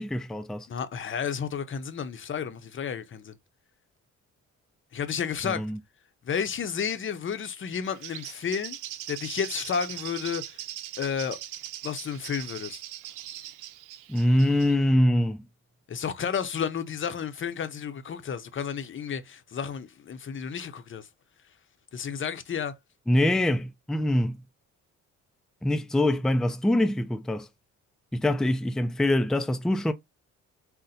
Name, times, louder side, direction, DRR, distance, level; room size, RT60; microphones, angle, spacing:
voice 1, 0.0-0.7 5.4-5.8 14.1-15.5 23.1-24.4 25.6-27.5 28.1-29.9, left 1 dB, ahead, 0.4 m, -24 dB
voice 2, 0.7-3.4 4.9-5.7 6.2-8.8 9.1-10.6 11.0-11.4 11.8-12.8 15.9-21.1 21.9-22.7, left 7 dB, 40° left, 0.7 m, -32 dB
Bird, 7.8-14.8, right 13 dB, 85° right, 0.5 m, -40 dB
4.2 x 2.1 x 3.9 m
cardioid pair, 90°, 30 cm